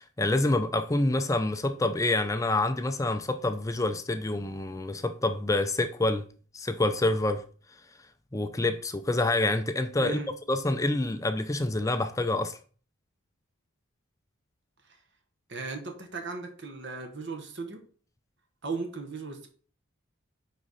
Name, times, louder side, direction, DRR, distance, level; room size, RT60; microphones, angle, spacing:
voice 1, 0.0-6.3 6.5-7.4 8.3-10.2 10.5-12.6, left 2 dB, 15° left, 0.4 m, -27 dB
voice 2, 10.0-10.3 14.8-15.0 15.5-17.8 18.6-19.5, right 4 dB, 55° right, 1.2 m, -37 dB
9.7 x 4.2 x 4.1 m
head